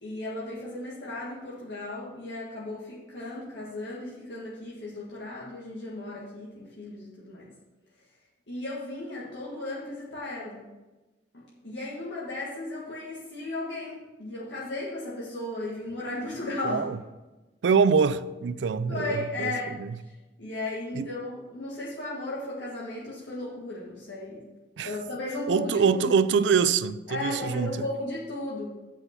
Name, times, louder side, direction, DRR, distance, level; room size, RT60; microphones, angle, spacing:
voice 1, 0.0-7.5 8.5-10.6 11.3-16.9 18.9-19.7 20.4-24.4 24.8-26.1 27.1-28.7, left 2 dB, 75° left, 1.7 m, -35 dB
voice 2, 16.6-17.0 17.6-19.9 20.9-21.1 24.8-24.9 25.5-27.7, right 6 dB, 75° right, 0.4 m, -24 dB
8.0 x 5.8 x 5.8 m
head